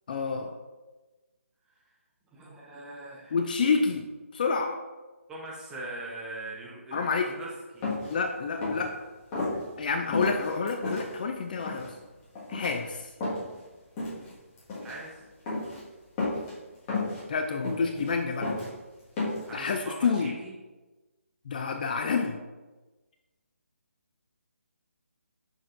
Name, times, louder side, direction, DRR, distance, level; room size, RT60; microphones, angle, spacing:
voice 1, 0.1-0.5 3.3-4.1 4.3-4.8 6.9-7.3 8.1-8.9 9.8-12.0 12.5-13.1 17.3-18.5 19.5-20.3 21.5-22.4, left 5 dB, 35° left, 5 dB, 0.4 m, -28 dB
voice 2, 2.3-3.4 5.3-7.9 14.8-15.2 19.4-20.5, right 2 dB, 10° right, -4 dB, 0.8 m, -41 dB
sound 1, 7.8-8.1 8.5-8.9 9.3-9.5 10.1-11.0 11.6-11.9 12.3-12.8 13.2-13.6 14.0-14.3 14.6-15.0 15.5-15.8 16.2-16.5 16.9-17.2 17.6-18.1 18.4-18.7 19.2-19.5, left 3 dB, 20° left, 1.6 m, -31 dB
6.3 x 6.1 x 2.5 m, 1.2 s
figure-of-eight pair, 150°, 8 cm